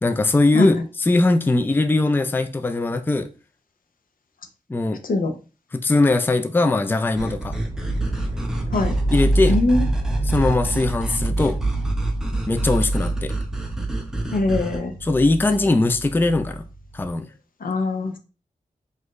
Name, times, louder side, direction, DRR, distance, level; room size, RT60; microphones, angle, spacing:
voice 1, 0.0-3.3 4.7-5.0 5.7-7.6 9.1-9.6 10.3-11.6 12.5-13.3 15.0-16.6 16.9-17.3, left 2 dB, 15° left, 0.4 m, -20 dB
sound 1, 7.2-14.8, right 2 dB, 5° right, 0.8 m, -30 dB
sound 2, 7.3-17.1, right 1 dB, 30° right, 1.0 m, -26 dB
voice 2, 9.5-9.9 14.3-14.9 17.6-18.2, left 2 dB, 75° left, 0.6 m, -22 dB
4.3 x 2.5 x 3.0 m
wide cardioid pair, 70°, 14 cm